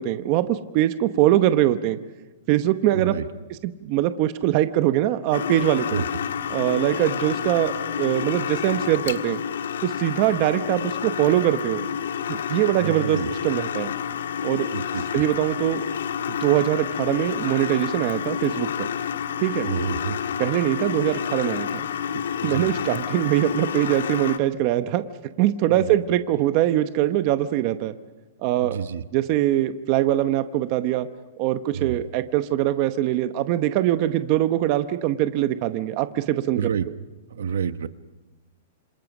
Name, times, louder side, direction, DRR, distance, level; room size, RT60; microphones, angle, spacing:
voice 1, 0.0-2.0 2.5-3.2 3.6-6.0 6.5-9.4 9.8-11.9 12.3-13.9 14.4-14.7 15.1-15.9 16.3-18.9 19.4-19.7 20.4-21.9 22.4-25.0 25.4-27.9 28.4-28.8 29.1-31.1 31.4-36.7, right 13 dB, 30° right, 11 dB, 0.9 m, -22 dB
voice 2, 2.9-3.3 5.9-6.0 12.8-13.3 14.7-15.0 19.6-20.2 22.4-22.7 25.7-26.0 28.6-29.0 31.7-32.0 36.5-36.9 37.3-37.9, right 7 dB, 80° right, 12 dB, 1.1 m, -28 dB
sound 1, 5.3-24.4, left 8 dB, 85° left, 1.5 m, -29 dB
27.0 x 27.0 x 6.1 m, 1.2 s
hypercardioid pair, 170°, 0 cm